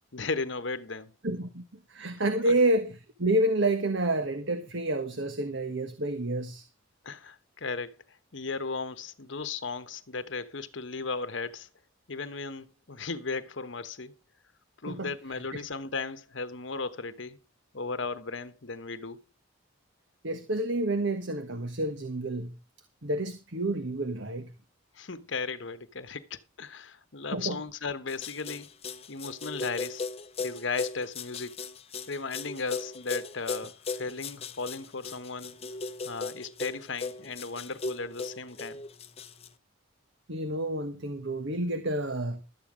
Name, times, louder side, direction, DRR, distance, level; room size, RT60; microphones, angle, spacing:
voice 1, 0.0-1.1 2.5-2.6 7.0-8.0 8.3-11.7 12.1-14.1 14.8-17.4 17.7-19.2 25.0-28.7 29.1-30.0 30.4-31.6 32.1-35.6 36.0-38.8, left 4 dB, 60° left, 1.1 m, -36 dB
voice 2, 1.2-1.6 1.9-6.6 14.9-15.1 15.5-15.6 20.2-22.5 23.0-24.5 27.3-27.6 40.3-42.4, right 1 dB, 60° right, 1.3 m, -29 dB
sound 1, 28.1-39.5, left 4 dB, 30° left, 0.8 m, -37 dB
12.5 x 9.1 x 4.9 m
head